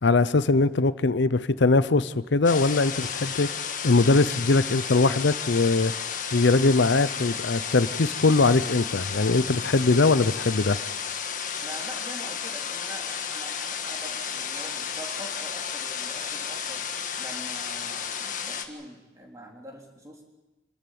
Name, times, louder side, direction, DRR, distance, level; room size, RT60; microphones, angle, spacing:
voice 1, 0.0-3.5 3.8-5.9 6.3-10.8, left 3 dB, 80° left, 15 dB, 0.7 m, -21 dB
sound 1, 2.4-18.6, left 7 dB, 45° left, 1.6 m, -33 dB
voice 2, 11.6-16.8 17.2-20.2, right 1 dB, 20° right, 0 dB, 3.8 m, -44 dB
27.5 x 14.0 x 9.3 m, 1.1 s
head